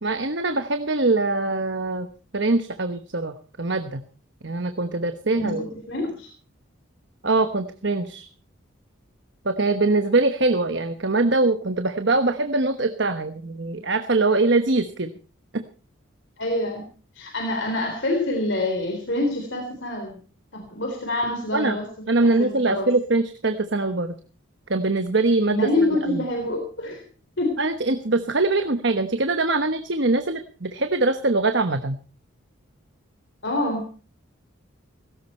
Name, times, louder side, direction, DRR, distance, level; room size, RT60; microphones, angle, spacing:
voice 1, 0.0-2.1 2.3-4.0 4.4-5.7 7.2-8.3 9.4-15.1 15.5-15.6 21.5-21.8 22.1-24.1 24.7-26.2 27.6-32.0, right 2 dB, 55° right, 8 dB, 1.1 m, -23 dB
voice 2, 5.3-6.3 16.4-16.8 17.2-20.1 20.5-21.8 22.2-22.9 25.5-27.0 27.4-27.6 33.4-33.8, left 2 dB, 60° left, 3 dB, 3.6 m, -26 dB
17.5 x 16.5 x 4.3 m, 0.39 s
head